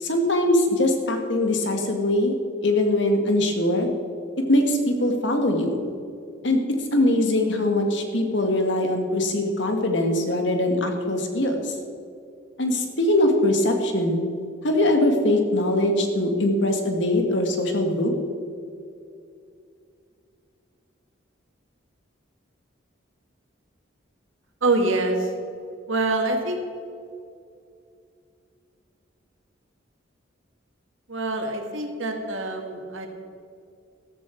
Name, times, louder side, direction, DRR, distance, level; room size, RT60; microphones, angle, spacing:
voice 1, 0.0-2.4 2.6-3.9 4.5-5.8 6.4-6.6 6.9-11.7 12.6-14.2 14.6-18.1, left 1 dB, 65° left, 4 dB, 1.7 m, -22 dB
voice 2, 24.6-25.3 25.9-26.6 31.1-33.1, right 2 dB, 85° right, 3 dB, 1.9 m, -25 dB
14.0 x 13.0 x 4.5 m, 2.4 s
head